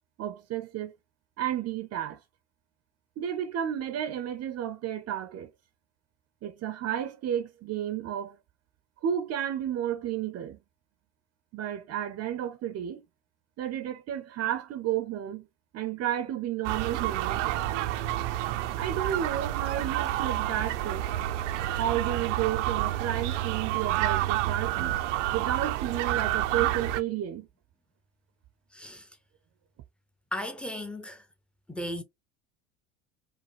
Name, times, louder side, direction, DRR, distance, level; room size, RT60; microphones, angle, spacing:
voice 1, 0.2-0.9 1.4-2.2 3.2-5.5 6.4-8.4 9.0-10.6 11.5-13.0 13.6-15.5 15.7-17.8 18.8-21.1 21.8-25.0 25.3-27.5, right 10 dB, 45° right, 0.7 m, -32 dB
sound 1, 16.6-27.0, right 14 dB, 75° right, 0.7 m, -29 dB
voice 2, 28.7-29.1 30.3-31.3 31.7-32.0, left 1 dB, 5° left, 0.9 m, -36 dB
5.1 x 2.2 x 3.1 m
hypercardioid pair, 80°, 36 cm